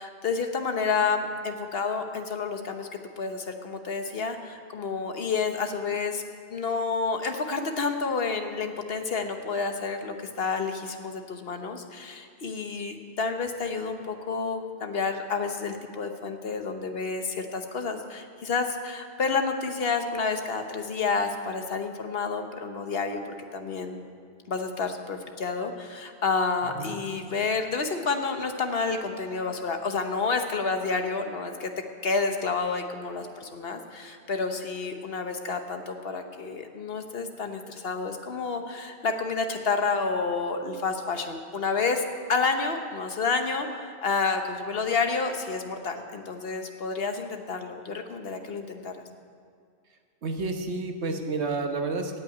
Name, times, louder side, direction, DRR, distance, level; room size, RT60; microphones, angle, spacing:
voice 1, 0.0-2.9 3.2-6.2 6.5-23.2 23.5-24.0 24.5-31.7 32.0-42.0 42.3-48.9, left 4 dB, 65° left, 6 dB, 1.2 m, -29 dB
voice 2, 50.2-52.2, right 3 dB, 90° right, 5 dB, 1.5 m, -30 dB
16.5 x 5.7 x 9.4 m, 2.2 s
omnidirectional pair, 1.1 m